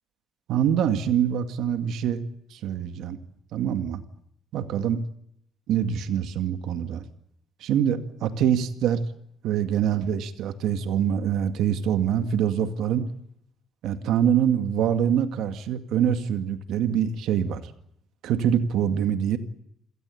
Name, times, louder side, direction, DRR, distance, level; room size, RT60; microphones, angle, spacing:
voice 1, 0.5-2.2 2.5-3.2 3.5-4.0 4.5-5.0 5.7-7.0 7.6-9.0 9.4-13.1 13.8-17.6 18.2-19.4, right 9 dB, 75° right, 8 dB, 2.0 m, -24 dB
28.0 x 17.5 x 8.6 m, 0.71 s
cardioid pair, 180°, 0 cm